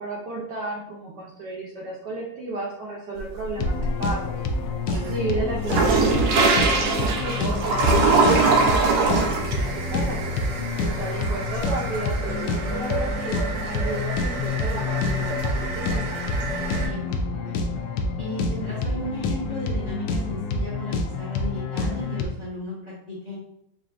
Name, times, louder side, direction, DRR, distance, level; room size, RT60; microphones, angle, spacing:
voice 1, 0.0-4.3 5.1-6.5 7.0-10.2 10.8-16.0, right 2 dB, 70° right, -3 dB, 1.1 m, -33 dB
sound 1, 3.2-4.1 4.5-16.9, right 3 dB, 85° right, 1.6 m, -24 dB
sound 2, 3.6-22.3, left 3 dB, 75° left, 1.0 m, -28 dB
voice 2, 16.8-17.1 17.4-17.6 18.2-23.4, left 1 dB, 30° left, -7 dB, 0.9 m, -34 dB
5.7 x 2.5 x 2.4 m, 0.78 s
omnidirectional pair, 2.4 m